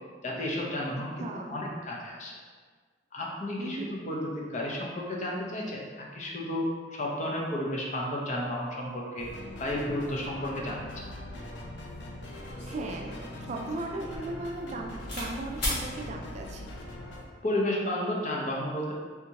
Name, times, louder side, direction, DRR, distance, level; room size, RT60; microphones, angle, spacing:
voice 1, 0.2-2.4 3.1-9.3 9.6-11.0 17.4-18.9, left 1 dB, 40° left, -3 dB, 0.6 m, -32 dB
voice 2, 1.2-1.6 3.6-3.9 12.6-13.1 13.4-16.7, right 2 dB, 40° right, 1 dB, 0.3 m, -37 dB
sound 1, 9.2-17.2, left 1 dB, 80° left, 0.5 m, -42 dB
sound 2, 12.5-15.3 15.6-15.9 16.7-17.1, left 1 dB, 65° left, 1.3 m, -37 dB
3.4 x 2.8 x 2.8 m, 1.5 s
head